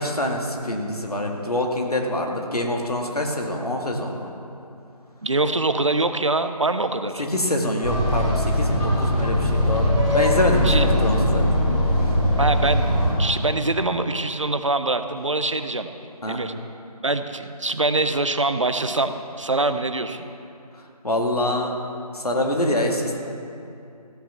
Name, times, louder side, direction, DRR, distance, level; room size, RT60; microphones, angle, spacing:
voice 1, 0.0-4.3 7.2-11.5 16.2-16.4 21.0-21.8 22.1-23.2, left 1 dB, 70° left, 1 dB, 2.1 m, -25 dB
voice 2, 5.2-7.3 10.6-10.9 12.4-12.9 13.2-15.9 16.3-16.5 17.0-20.3, right 2 dB, 50° right, 9 dB, 0.7 m, -24 dB
sound 1, 7.8-13.1, left 1 dB, 5° left, 2.5 m, -20 dB
15.0 x 8.6 x 5.8 m, 2.6 s
figure-of-eight pair, 165°, 20 cm